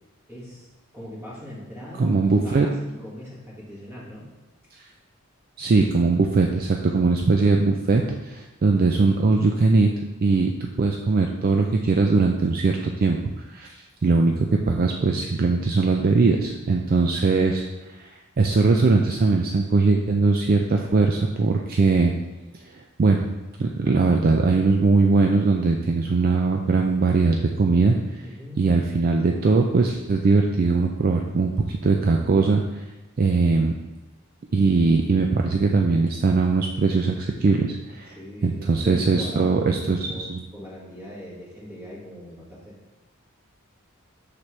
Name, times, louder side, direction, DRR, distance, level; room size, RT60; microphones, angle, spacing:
voice 1, 0.3-0.7 0.9-4.3 28.2-28.6 38.1-42.7, left 1 dB, 10° right, -6 dB, 1.7 m, -40 dB
voice 2, 2.0-2.7 5.6-9.9 10.2-13.2 13.5-17.6 18.0-18.1 18.4-22.1 22.7-23.3 23.6-28.0 28.6-32.8 33.2-33.8 34.5-38.2 38.4-40.4, right 3 dB, 45° right, 2 dB, 0.4 m, -20 dB
6.1 x 5.9 x 3.2 m, 1.1 s
head